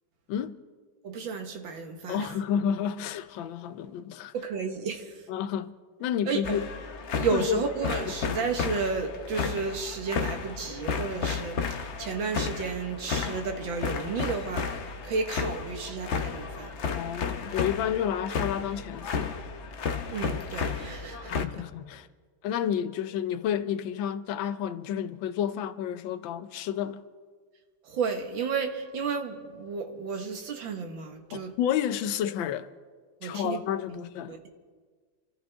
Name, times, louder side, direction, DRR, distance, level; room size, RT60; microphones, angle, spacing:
voice 1, 1.0-2.3 4.3-5.1 6.3-6.6 7.2-14.7 15.0-16.7 20.1-21.3 27.8-31.5 33.2-33.6 33.9-34.0 34.3-34.5, right 5 dB, 85° right, 2.2 m, -32 dB
voice 2, 2.1-4.3 5.3-5.7 6.0-6.7 7.3-7.6 16.9-19.3 21.3-22.1 22.4-27.0 31.3-32.7 33.2-34.3, left 9 dB, 85° left, 1.4 m, -30 dB
sound 1, 6.4-21.5, left 5 dB, 55° left, 0.8 m, -33 dB
27.0 x 14.0 x 3.5 m
omnidirectional pair, 2.1 m